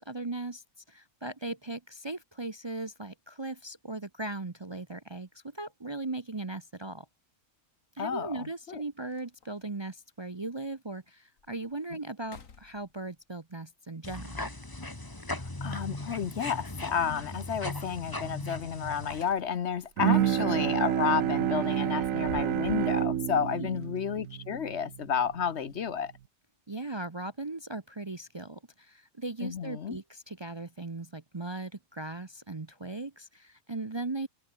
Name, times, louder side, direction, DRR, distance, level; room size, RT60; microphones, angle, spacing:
voice 1, 0.0-7.1 8.0-14.5 23.4-23.7 26.7-34.3, right 2 dB, 25° right, 0.8 m, -38 dB
sound 1, 6.4-6.5 8.2-8.3 8.7-8.8 9.1-9.7 10.2-10.3 10.9-11.0 11.4-11.7 12.2-13.2 15.3-16.0 18.8-19.8 20.2-20.4 21.7-23.0, left 6 dB, 80° left, 2.2 m, -49 dB
voice 2, 8.0-8.8 15.3-26.1 29.4-30.0, left 7 dB, 60° left, 1.1 m, -31 dB
sound 2, 14.0-19.2, left 2 dB, 15° left, 1.7 m, -38 dB
Bowed string instrument, 20.0-25.4, right 11 dB, 80° right, 1.2 m, -29 dB
omnidirectional pair, 1.4 m